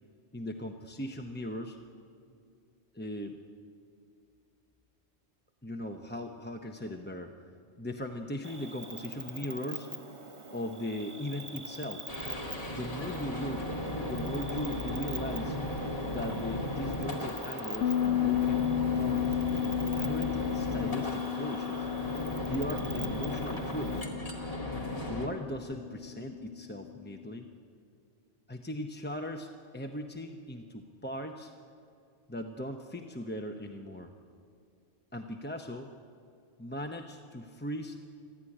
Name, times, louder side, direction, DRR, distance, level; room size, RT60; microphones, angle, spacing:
voice 1, 0.3-1.8 2.9-3.4 5.6-7.3 7.8-9.9 10.5-12.1 12.7-13.7 14.0-15.6 16.1-19.4 19.9-21.9 22.4-24.1 25.1-27.5 28.5-31.5 32.3-34.1 35.1-35.9 36.6-38.0, equal, 10° left, 4 dB, 0.7 m, -38 dB
Cricket, 8.4-24.0, right 3 dB, 25° right, 1.1 m, -45 dB
sound 1, 12.1-25.3, left 1 dB, 30° left, 2.4 m, -36 dB
Bass guitar, 17.8-27.2, left 11 dB, 85° left, 1.1 m, -34 dB
22.0 x 14.5 x 9.9 m, 2.4 s
omnidirectional pair, 1.2 m